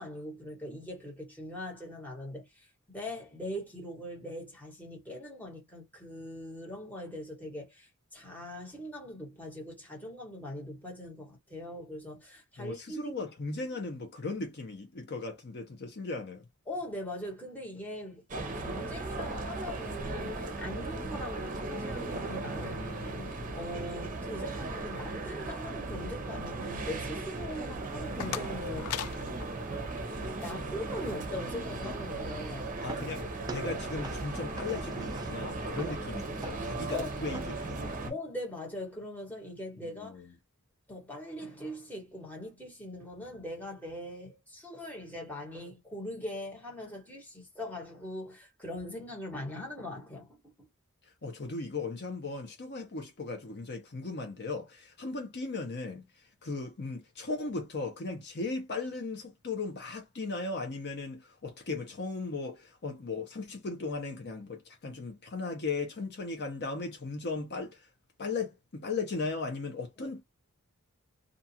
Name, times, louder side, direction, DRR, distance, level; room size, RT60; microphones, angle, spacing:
voice 1, 0.0-13.1 16.7-29.0 30.4-32.7 35.9-36.0 36.9-37.1 38.1-40.2 40.9-50.7, left 1 dB, 10° left, 1.3 m, -41 dB
voice 2, 12.6-16.4 22.6-23.4 32.7-38.1 39.8-40.3 51.2-67.9 68.2-70.2, left 3 dB, 50° left, 0.8 m, -37 dB
sound 1, 18.3-38.1, right 2 dB, 35° right, 0.7 m, -37 dB
sound 2, 27.8-30.5, left 11 dB, 80° left, 0.3 m, -40 dB
sound 3, 32.1-37.9, right 3 dB, 20° right, 0.3 m, -47 dB
2.6 x 2.4 x 2.7 m
head